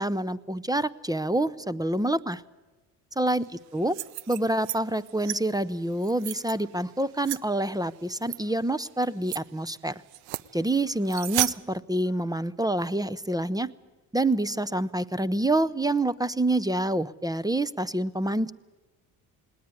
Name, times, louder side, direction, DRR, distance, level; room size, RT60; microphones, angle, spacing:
voice 1, 0.0-2.4 3.2-3.5 3.7-4.0 4.3-9.9 10.5-13.7 14.1-18.5, right 1 dB, 10° right, 17 dB, 0.6 m, -27 dB
sound 1, 3.8-4.8 5.1-5.4 5.9-6.5 7.2-7.4 8.2-8.4 8.8-8.9 9.2-9.4 10.1-10.5 11.1-11.5, right 17 dB, 90° right, 0.6 m, -32 dB
19.5 x 18.0 x 9.7 m, 1.2 s
supercardioid pair, 65°, 48 cm